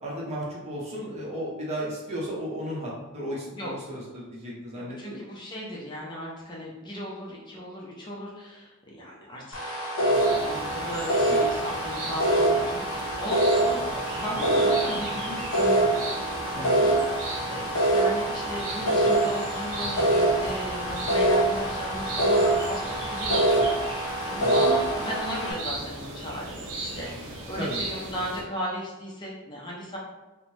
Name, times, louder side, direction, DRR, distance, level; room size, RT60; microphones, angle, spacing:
voice 1, 0.0-5.2 11.2-11.4 16.6-16.8 24.4-24.7 27.6-27.8, equal, 30° right, -4 dB, 0.7 m, -34 dB
voice 2, 3.5-3.9 4.8-30.0, equal, 20° left, -4 dB, 0.4 m, -36 dB
sound 1, 9.5-25.5, right 1 dB, 75° left, 0.7 m, -25 dB
sound 2, 10.1-28.4, right 2 dB, 75° right, 0.6 m, -37 dB
2.6 x 2.0 x 3.1 m, 1.1 s
head